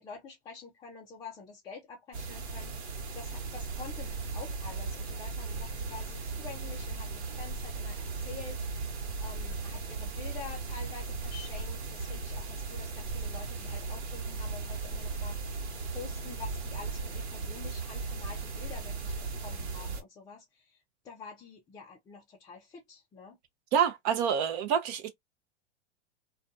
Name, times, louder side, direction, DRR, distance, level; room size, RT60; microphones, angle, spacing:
voice 1, 0.0-8.9 9.2-15.4 15.9-23.4, left 5 dB, 10° left, 0.4 m, -47 dB
sound 1, 2.1-20.0, right 4 dB, 65° right, 1.2 m, -37 dB
voice 2, 23.7-25.1, right 8 dB, 40° right, 0.6 m, -27 dB
2.4 x 2.3 x 2.6 m
hypercardioid pair, 130°, 35 cm